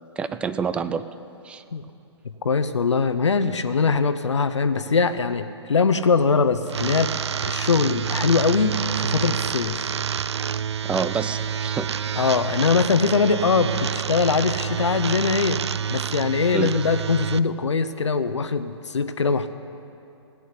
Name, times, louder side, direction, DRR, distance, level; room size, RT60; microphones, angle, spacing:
voice 1, 0.2-1.0 1.4-1.6 10.8-11.9 16.5-16.7, right 5 dB, 5° right, 12 dB, 0.3 m, -27 dB
voice 2, 2.2-7.1 7.4-9.9 12.2-15.6 15.9-19.5, left 5 dB, 75° left, 10 dB, 0.8 m, -22 dB
sound 1, 6.7-17.4, right 8 dB, 70° right, 0.4 m, -28 dB
17.5 x 8.6 x 9.7 m, 2.7 s
figure-of-eight pair, 125°, 15 cm